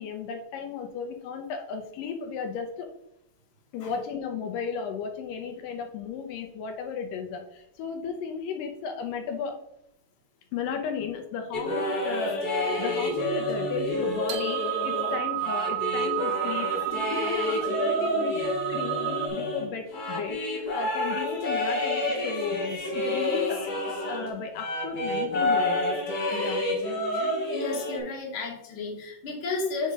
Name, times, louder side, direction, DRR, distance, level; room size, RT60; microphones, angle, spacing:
voice 1, 0.0-2.9 3.7-9.6 10.5-23.6 23.9-26.0 26.3-26.7, left 6 dB, 85° left, 4 dB, 2.4 m, -35 dB
sound 1, 11.5-24.3 24.6-28.0, left 1 dB, 65° left, 0.9 m, -29 dB
sound 2, 12.6-19.3, right 19 dB, 75° right, 2.1 m, -32 dB
voice 2, 27.5-29.9, left 3 dB, 45° left, -1 dB, 2.1 m, -33 dB
5.6 x 4.8 x 5.2 m, 0.79 s
omnidirectional pair, 3.9 m